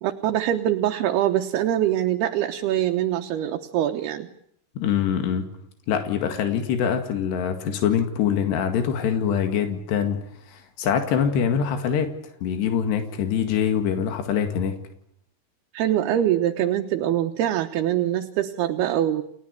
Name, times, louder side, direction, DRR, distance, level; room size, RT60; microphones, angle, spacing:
voice 1, 0.0-4.3 15.7-19.2, right 11 dB, 75° right, 4 dB, 3.0 m, -23 dB
voice 2, 4.8-5.5 5.9-10.2 10.5-12.1 12.4-14.8, left 8 dB, 85° left, 6 dB, 4.2 m, -24 dB
30.0 x 16.0 x 9.5 m, 0.71 s
omnidirectional pair, 4.7 m